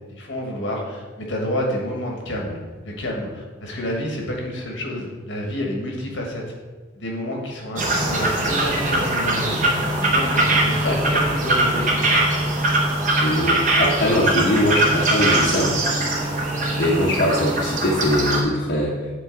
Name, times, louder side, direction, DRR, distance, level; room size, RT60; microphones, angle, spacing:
voice 1, 0.1-6.5 6.9-12.2, left 1 dB, 75° left, 0 dB, 1.2 m, -29 dB
sound 1, 7.8-18.4, right 2 dB, 40° right, 0.8 m, -21 dB
voice 2, 13.2-15.9 16.8-19.0, left 1 dB, 55° left, -5 dB, 0.8 m, -21 dB
7.5 x 3.3 x 3.8 m, 1.3 s
head